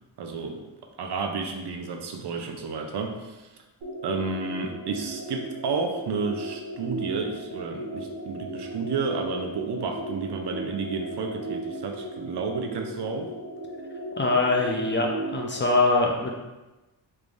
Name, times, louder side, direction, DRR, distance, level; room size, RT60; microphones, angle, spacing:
voice 1, 0.2-0.7 1.0-3.5 4.0-13.3, right 4 dB, 60° right, 3 dB, 0.6 m, -31 dB
sound 1, 3.8-15.7, right 1 dB, 90° right, 1.3 m, -36 dB
voice 2, 14.2-16.3, left 3 dB, 25° left, 0 dB, 0.5 m, -23 dB
3.4 x 3.2 x 2.6 m, 1.1 s
cardioid pair, 80°, 45 cm